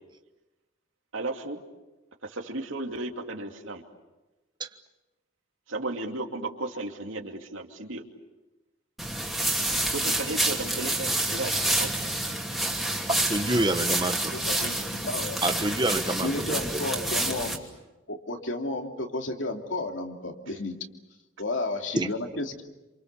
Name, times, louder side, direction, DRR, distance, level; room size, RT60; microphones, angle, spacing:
voice 1, 1.1-1.6 2.2-3.8 5.7-8.0 9.9-11.9, right 2 dB, 75° right, 3 dB, 2.7 m, -34 dB
sound 1, 9.0-17.6, right 1 dB, ahead, 2.7 m, -28 dB
voice 2, 13.1-14.3 15.4-16.5 16.7-16.8 22.0-22.1, right 1 dB, 20° right, 7 dB, 1.3 m, -27 dB
voice 3, 14.3-15.4 16.2-17.6 18.1-20.8 21.4-22.6, left 2 dB, 70° left, 3 dB, 2.9 m, -32 dB
28.5 x 27.5 x 6.9 m, 1.1 s
head